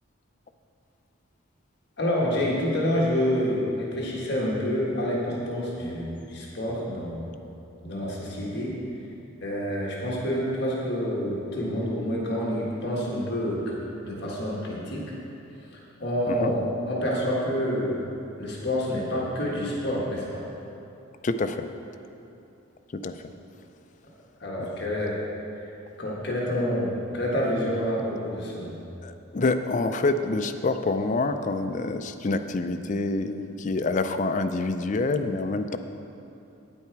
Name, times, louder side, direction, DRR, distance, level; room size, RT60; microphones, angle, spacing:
voice 1, 2.0-7.3 7.8-8.8 9.4-13.7 14.0-15.1 15.7-18.0 18.4-20.4 24.4-25.2 25.6-25.7 26.0-28.8, equal, 50° left, -4 dB, 1.5 m, -28 dB
voice 2, 21.2-21.7 22.9-23.1 29.0-35.8, left 3 dB, 35° left, 8 dB, 0.4 m, -27 dB
9.2 x 8.8 x 4.6 m, 2.8 s
head